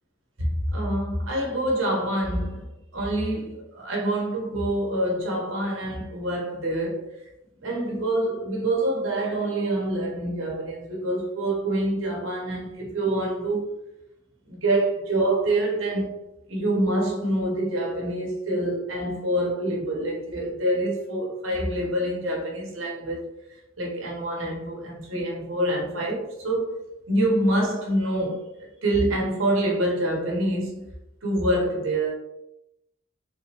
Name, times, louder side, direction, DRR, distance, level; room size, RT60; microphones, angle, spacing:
voice 1, 0.4-2.7 2.9-7.1 7.6-13.8 14.5-16.2 16.5-23.3 23.8-26.8 27.1-30.9 31.2-32.1, right 1 dB, 70° right, 1.0 m, -26 dB
3.8 x 3.0 x 2.9 m
head